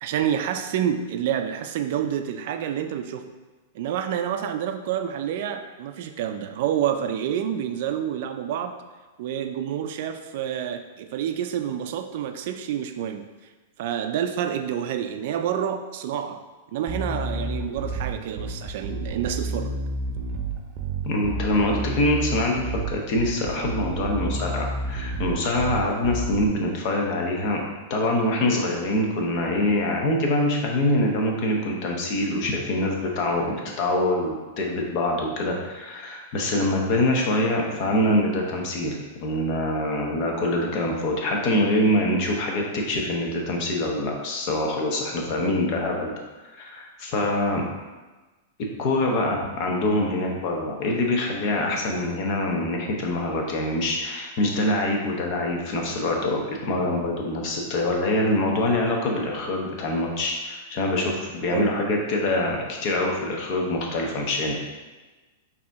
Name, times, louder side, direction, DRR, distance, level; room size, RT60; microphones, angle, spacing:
voice 1, 0.0-3.3 3.7-8.8 9.2-13.3 13.8-16.4 16.7-19.8 61.5-61.8, right 9 dB, 60° right, 7 dB, 0.4 m, -28 dB
Bass guitar, 16.9-26.5, right 2 dB, 35° right, 0.7 m, -30 dB
voice 2, 21.1-27.6 27.9-46.2 46.6-47.6 48.8-64.6, left 1 dB, 45° left, 0 dB, 0.9 m, -25 dB
5.0 x 2.8 x 3.5 m, 1.2 s
hypercardioid pair, 135°, 0 cm